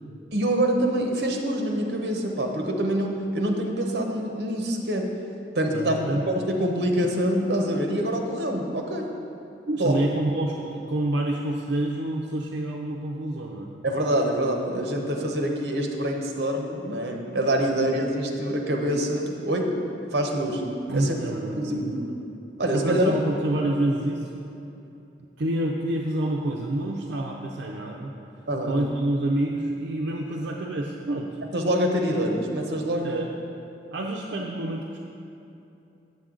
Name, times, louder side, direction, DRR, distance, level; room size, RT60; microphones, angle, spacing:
voice 1, 0.3-5.1 5.5-9.1 9.8-10.0 13.8-19.7 20.1-20.6 20.9-21.2 21.5-22.0 22.6-23.1 28.5-28.8 31.5-33.3, right 1 dB, 60° right, 2 dB, 0.9 m, -25 dB
voice 2, 5.7-6.2 9.7-13.7 20.9-22.2 22.7-24.3 25.4-28.1 28.7-31.3 33.0-33.3 33.9-35.0, right 1 dB, 75° right, -1 dB, 0.5 m, -28 dB
7.5 x 7.4 x 3.8 m, 2.8 s
head